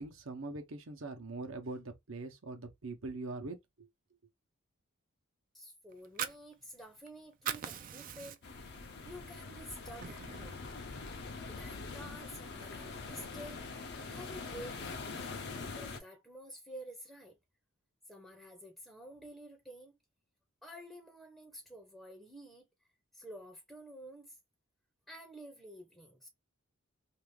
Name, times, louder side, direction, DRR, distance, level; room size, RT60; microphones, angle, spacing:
voice 1, 0.0-3.9, right 3 dB, 75° right, 0.9 m, -42 dB
voice 2, 5.5-8.7 9.0-10.6 11.5-13.7 14.0-15.4 15.8-17.4 18.1-19.9 20.6-22.7 23.1-24.4 25.1-26.3, equal, ahead, 0.6 m, -50 dB
Fire, 5.9-7.1 7.3-8.7 9.1-9.2 9.6-10.6, right 8 dB, 40° right, 0.4 m, -40 dB
sound 1, 8.4-16.0, left 4 dB, 50° left, 0.6 m, -44 dB
2.7 x 2.4 x 3.2 m
head